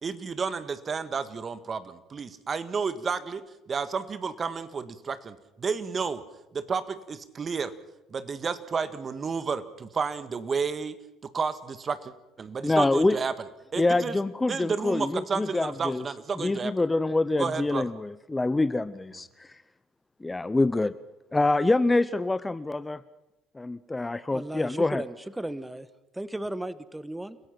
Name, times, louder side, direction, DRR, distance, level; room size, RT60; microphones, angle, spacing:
voice 1, 0.0-6.2 6.5-7.7 8.1-10.9 11.3-13.3 13.7-14.2 14.5-16.7 17.4-17.9, right 5 dB, 40° right, 12 dB, 1.6 m, -31 dB
voice 2, 12.6-13.2 13.8-16.0 16.4-19.5 20.2-20.9 21.3-23.0 23.5-25.0, left 2 dB, 15° left, 15 dB, 0.8 m, -26 dB
voice 3, 24.3-25.9 26.1-27.4, right 1 dB, 10° right, 15 dB, 1.3 m, -35 dB
29.0 x 16.5 x 5.9 m, 0.93 s
hypercardioid pair, 65°, 0 cm